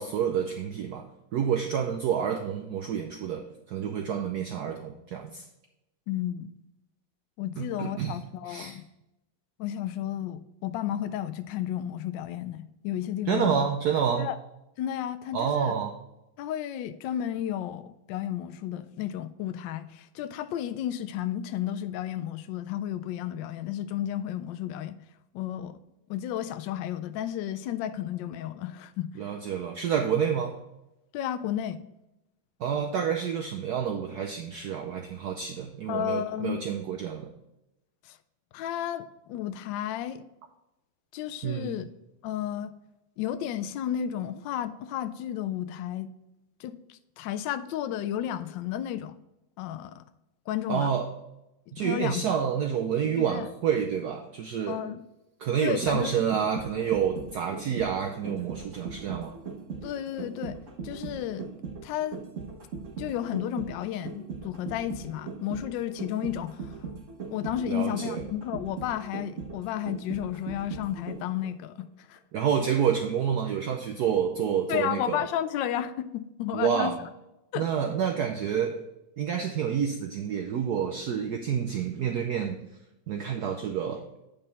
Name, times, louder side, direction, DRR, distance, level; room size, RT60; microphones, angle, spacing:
voice 1, 0.0-5.4 7.6-8.2 8.5-8.8 13.3-14.3 15.3-15.9 29.2-30.6 32.6-37.3 41.4-41.8 50.7-51.1 51.7-54.8 55.4-59.4 67.6-68.2 72.3-75.3 76.5-77.0 77.5-78.8 79.2-82.6 83.1-84.1, right 8 dB, 70° right, 1.0 m, -28 dB
voice 2, 6.1-6.5 7.4-8.9 9.6-13.6 14.2-14.4 14.8-15.7 16.4-25.0 25.3-25.8 26.1-29.2 31.1-31.8 35.9-36.6 38.0-38.2 38.5-40.2 41.1-41.9 42.2-42.7 43.2-46.1 46.6-49.1 49.6-50.0 50.5-50.9 51.8-52.3 53.1-53.5 54.7-55.0 55.6-56.2 59.8-60.6 60.8-61.5 61.8-62.2 63.0-66.8 67.3-72.2 74.7-76.9 77.5-77.7, left 11 dB, 75° left, 1.1 m, -32 dB
sound 1, 55.6-71.5 71.8-71.9, right 5 dB, 45° right, 1.1 m, -39 dB
8.9 x 5.4 x 4.0 m
omnidirectional pair, 2.3 m